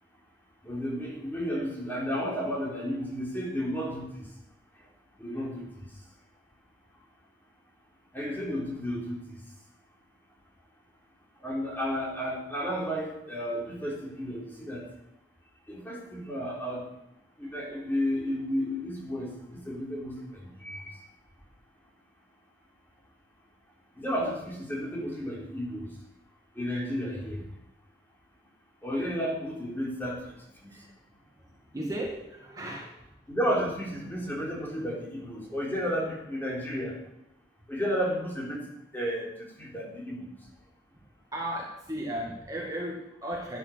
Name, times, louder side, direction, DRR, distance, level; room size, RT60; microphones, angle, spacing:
voice 1, 0.6-4.2 5.2-5.7 8.1-9.2 11.4-14.8 15.7-16.9 17.4-21.0 24.0-25.8 26.6-27.4 28.8-30.2 33.3-36.9 37.7-38.6 38.9-39.3 39.6-40.2, equal, 10° left, -3 dB, 3.6 m, -32 dB
voice 2, 31.4-33.1 41.3-43.6, right 1 dB, 20° right, -2 dB, 1.8 m, -36 dB
12.5 x 11.0 x 6.1 m, 0.87 s
head